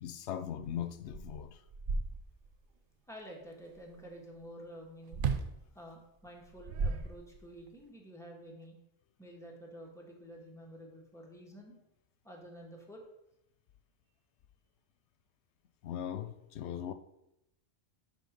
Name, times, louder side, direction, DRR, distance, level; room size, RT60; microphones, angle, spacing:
voice 1, 0.0-1.6 15.8-16.9, left 9 dB, 90° left, 0.9 m, -39 dB
sound 1, 0.6-0.7 1.1-2.6 5.1-5.6 6.4-7.6, right 4 dB, 60° right, 0.7 m, -35 dB
voice 2, 3.1-5.2 5.7-8.8 9.2-11.8 12.2-13.0, equal, 5° left, 1.5 m, -50 dB
10.5 x 3.6 x 5.1 m
omnidirectional pair, 1.1 m